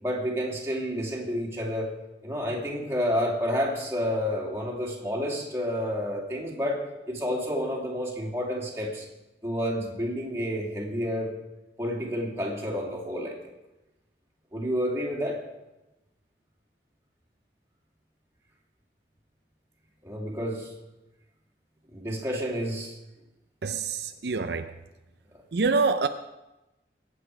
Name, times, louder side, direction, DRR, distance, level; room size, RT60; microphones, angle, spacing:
voice 1, 0.0-1.9 2.2-6.8 7.1-9.1 9.4-11.3 11.8-13.4 14.5-15.4 20.0-20.7 21.9-23.0, equal, 15° right, 2.8 m, -30 dB
voice 2, 23.6-24.7 25.5-26.1, right 4 dB, 65° right, 0.6 m, -26 dB
22.0 x 8.6 x 4.8 m
head